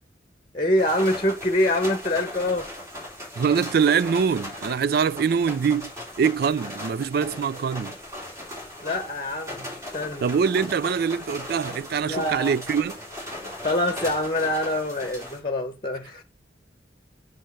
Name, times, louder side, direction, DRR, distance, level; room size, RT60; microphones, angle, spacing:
voice 1, 0.5-2.7 8.8-10.3 12.0-12.5 13.6-16.2, left 1 dB, 25° left, 1.2 m, -25 dB
sound 1, 0.8-15.4, left 1 dB, 15° right, 3.3 m, -38 dB
voice 2, 3.4-7.9 10.2-12.9, right 6 dB, 55° right, 0.4 m, -24 dB
6.4 x 5.3 x 5.8 m
head